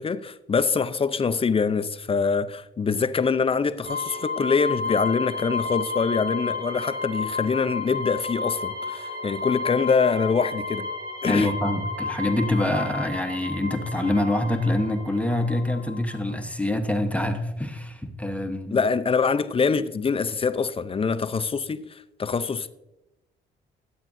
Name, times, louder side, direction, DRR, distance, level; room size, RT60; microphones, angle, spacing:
voice 1, 0.0-10.9 11.2-11.5 18.7-22.7, left 5 dB, 30° left, 0.5 m, -24 dB
sound 1, 3.8-16.3, left 4 dB, 55° right, 2.8 m, -32 dB
voice 2, 11.3-18.8, left 1 dB, 5° left, 1.0 m, -25 dB
13.5 x 8.8 x 2.6 m
cardioid pair, 90°, 20 cm